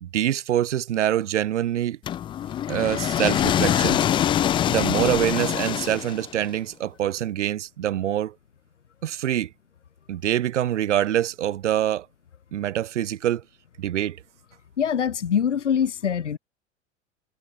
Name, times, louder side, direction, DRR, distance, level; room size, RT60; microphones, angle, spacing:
voice 1, 0.0-2.0 2.7-4.0 4.7-8.3 9.0-9.5 10.1-12.1 12.5-13.4 13.8-14.2, right 11 dB, 80° right, 0.5 m, -25 dB
sound 1, 2.1-6.5, left 11 dB, 15° left, 0.4 m, -24 dB
voice 2, 14.8-16.4, left 8 dB, 80° left, 1.0 m, -23 dB
figure-of-eight pair, 90°, 35 cm